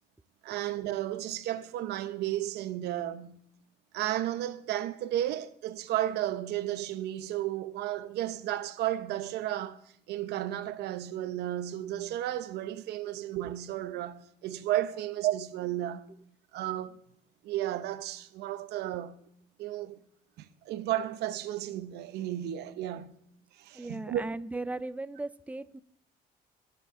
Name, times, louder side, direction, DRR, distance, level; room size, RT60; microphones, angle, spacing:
voice 1, 0.4-3.4 3.9-9.8 10.1-16.1 16.5-17.0 17.4-19.2 19.6-20.0 20.4-23.2 23.6-24.2, right 13 dB, 80° right, 0.8 m, -33 dB
voice 2, 23.7-25.8, right 2 dB, 10° right, 0.4 m, -37 dB
19.5 x 7.2 x 3.7 m
cardioid pair, 110°, 17 cm